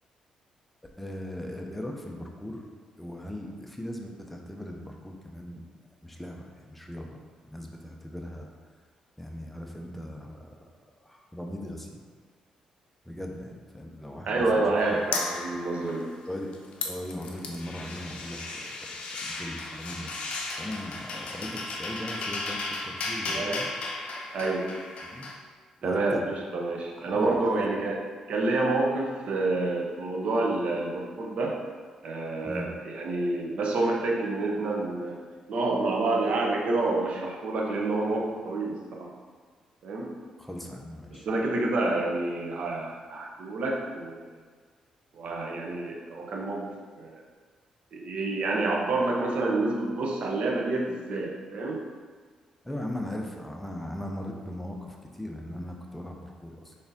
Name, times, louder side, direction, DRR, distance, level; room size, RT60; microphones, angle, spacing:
voice 1, 1.0-2.7 3.0-5.7 6.0-7.2 7.5-8.5 9.2-10.6 11.0-12.0 13.0-15.0 16.3-23.7 25.0-25.3 25.8-26.3 27.0-27.6 32.4-32.7 40.4-41.3 52.6-56.8, left 1 dB, 5° left, 1 dB, 0.5 m, -38 dB
voice 2, 14.3-16.1 23.2-23.6 24.3-24.7 25.8-28.0 28.3-31.6 32.0-35.2 35.5-39.1 39.8-40.1 41.1-44.4 45.1-46.7 47.0-47.2 47.9-51.8, right 2 dB, 65° right, -1 dB, 0.7 m, -28 dB
sound 1, 14.8-16.3 16.5-25.4, left 3 dB, 65° left, 0.5 m, -35 dB
3.9 x 3.5 x 2.7 m, 1.5 s
cardioid pair, 85°, 2 cm